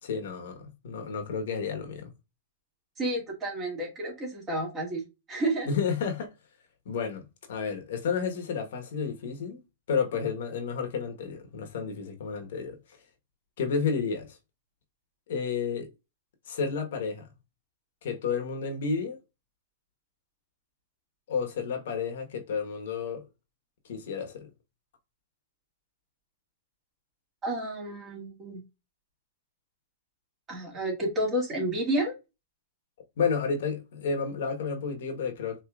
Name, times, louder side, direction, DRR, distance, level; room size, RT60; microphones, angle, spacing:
voice 1, 0.0-2.1 5.7-6.3 6.8-9.6 9.9-13.0 13.6-14.4 15.3-15.9 16.5-17.3 18.0-19.2 21.3-23.2 23.8-24.5 33.2-35.6, left 5 dB, 70° left, 1.1 m, -31 dB
voice 2, 3.0-5.7 27.4-28.6 30.5-32.1, right 1 dB, 20° right, 2.1 m, -30 dB
4.6 x 3.0 x 2.3 m
hypercardioid pair, 135°, 0 cm